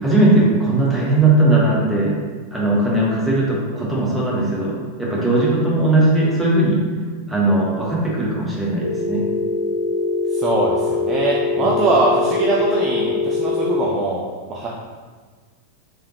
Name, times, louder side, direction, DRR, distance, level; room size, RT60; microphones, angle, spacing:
voice 1, 0.0-2.1 2.5-6.8 7.3-9.2 11.6-11.7, right 2 dB, 5° right, -6 dB, 1.0 m, -18 dB
Telephone, 8.8-13.8, left 4 dB, 70° right, 1.0 m, -22 dB
voice 2, 10.3-14.2 14.5-14.7, right 2 dB, 30° right, -3 dB, 0.4 m, -21 dB
3.4 x 3.3 x 2.8 m, 1.5 s
figure-of-eight pair, 90°, 0 cm